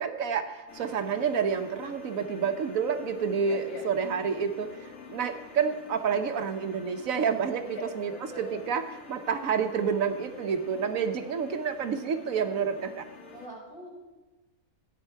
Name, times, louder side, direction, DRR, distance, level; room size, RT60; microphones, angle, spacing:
voice 1, 0.0-8.1 8.4-13.0, right 6 dB, 65° right, 8 dB, 1.2 m, -29 dB
sound 1, 0.7-13.5, left 5 dB, 60° left, 1.7 m, -47 dB
voice 2, 3.4-3.8 7.6-7.8 8.1-8.6 13.3-14.0, left 2 dB, 80° left, -3 dB, 4.8 m, -42 dB
15.0 x 9.1 x 4.5 m, 1.1 s
omnidirectional pair, 1.6 m